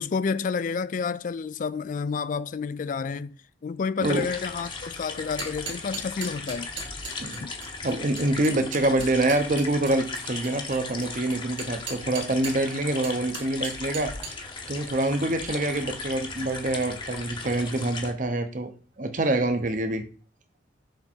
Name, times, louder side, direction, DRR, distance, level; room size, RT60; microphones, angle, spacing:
voice 1, 0.0-6.7 7.4-7.5, left 5 dB, 45° left, 0.3 m, -30 dB
sound 1, 4.0-18.1, left 4 dB, 25° left, 0.8 m, -37 dB
sound 2, 5.2-12.7 13.0-14.3, right 4 dB, 80° right, 2.1 m, -38 dB
voice 2, 7.8-14.1 14.7-20.1, right 2 dB, 45° right, 0.8 m, -26 dB
6.6 x 3.6 x 4.4 m
head